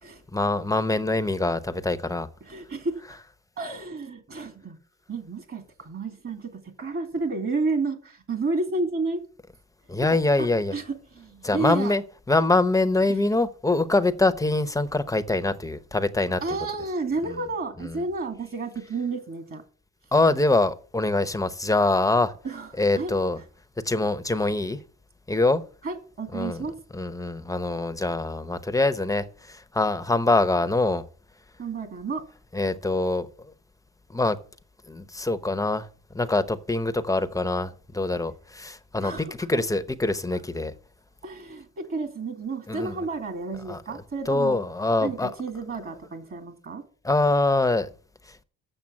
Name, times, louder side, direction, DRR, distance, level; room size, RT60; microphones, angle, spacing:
voice 1, 0.3-2.3 9.9-10.7 11.4-12.0 12.3-16.4 17.3-17.4 17.8-18.0 20.1-22.3 22.8-23.4 23.8-24.8 25.3-25.6 26.3-26.6 26.9-31.0 32.5-33.5 34.1-34.4 34.9-35.9 36.1-40.7 42.7-43.0 43.7-43.8 44.3-45.3 47.0-47.9 48.3-48.4, left 2 dB, 10° left, 0.8 m, -24 dB
voice 2, 2.5-3.0 3.6-4.8 5.1-6.5 6.8-9.2 10.7-11.9 16.4-19.6 22.4-23.4 25.8-26.7 31.6-32.2 39.0-39.6 41.2-44.6 45.0-46.8, right 3 dB, 45° right, 2.3 m, -31 dB
7.8 x 6.7 x 7.3 m
cardioid pair, 90°, 30 cm